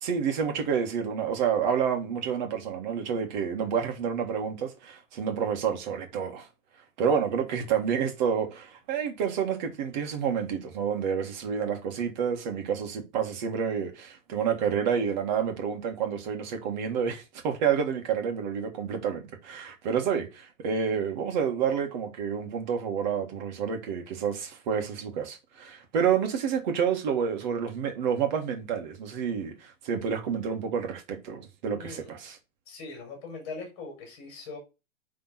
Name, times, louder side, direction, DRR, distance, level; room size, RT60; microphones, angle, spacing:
voice 1, 0.0-6.5 7.0-32.4, right 7 dB, 35° right, 1.9 m, -29 dB
voice 2, 31.8-32.1 32.7-34.6, left 4 dB, 30° left, 5.0 m, -41 dB
10.5 x 3.8 x 4.1 m
hypercardioid pair, 165°, 38 cm